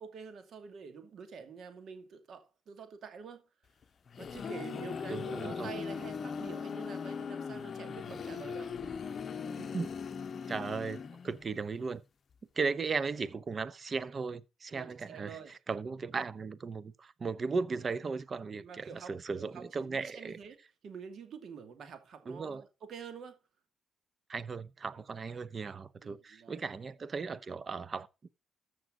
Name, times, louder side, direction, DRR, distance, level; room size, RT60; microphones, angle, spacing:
voice 1, 0.0-3.4 4.2-8.7 14.7-15.5 18.6-19.1 19.4-20.6 20.8-23.4 26.0-26.6, right 6 dB, 60° right, 2.3 m, -47 dB
sound 1, 3.8-11.5, left 6 dB, 45° left, 0.8 m, -39 dB
voice 2, 5.1-5.7 9.6-9.9 10.5-12.0 12.6-20.4 22.3-22.6 24.3-28.3, right 4 dB, 40° right, 0.8 m, -36 dB
14.0 x 6.4 x 3.7 m
cardioid pair, 90°, 0 cm